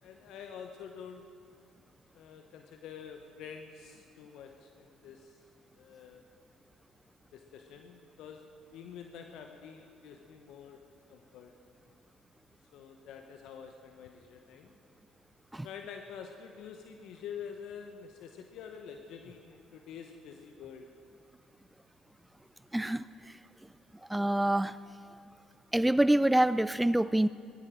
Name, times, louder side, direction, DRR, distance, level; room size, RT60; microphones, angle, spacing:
voice 1, 0.0-1.2 2.1-5.4 5.8-6.2 7.3-10.8 11.1-11.5 12.7-14.7 15.6-20.9, left 7 dB, 70° left, 5 dB, 0.9 m, -47 dB
voice 2, 22.7-23.4 24.0-24.8 25.7-27.3, right 1 dB, 10° right, 16 dB, 0.4 m, -26 dB
19.0 x 13.5 x 5.1 m, 2.4 s
hypercardioid pair, 55°, 0 cm